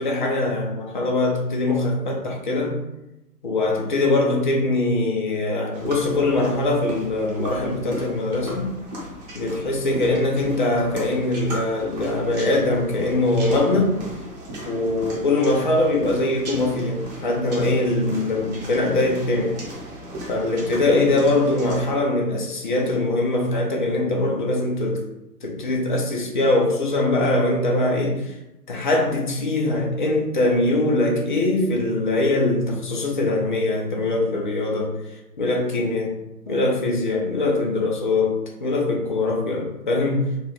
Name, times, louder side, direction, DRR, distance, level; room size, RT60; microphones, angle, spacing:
voice 1, 0.0-2.8 3.4-8.7 9.3-13.9 14.6-19.6 20.3-25.0 25.4-28.3 28.7-34.9 35.4-36.2 36.5-38.3 38.6-40.3, left 2 dB, 30° left, 0 dB, 0.6 m, -22 dB
sound 1, 5.7-21.9, right 1 dB, 25° right, 1.0 m, -36 dB
4.6 x 2.4 x 3.1 m, 0.93 s
figure-of-eight pair, 130°, 48 cm